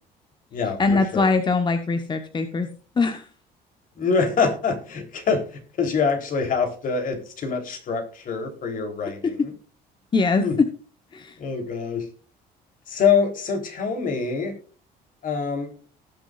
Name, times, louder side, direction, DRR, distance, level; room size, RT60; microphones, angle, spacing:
voice 1, 0.8-2.7 3.0-3.3 9.2-9.5 10.1-10.7 11.1-11.4, left 4 dB, 25° left, 8 dB, 1.0 m, -22 dB
voice 2, 4.0-9.5 10.4-10.6 11.4-12.1 12.9-14.5 15.2-15.7, left 5 dB, 55° left, 4 dB, 3.4 m, -25 dB
19.0 x 6.4 x 2.4 m, 0.40 s
cardioid pair, 110°, 17 cm